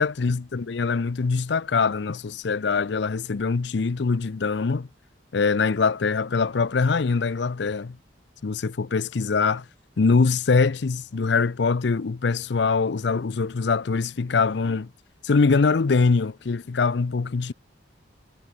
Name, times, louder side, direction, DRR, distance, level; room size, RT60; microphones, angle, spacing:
voice 1, 0.0-4.9 5.3-8.0 8.4-9.6 10.0-14.9 15.2-17.5, left 4 dB, 65° left, 0.5 m, -23 dB
head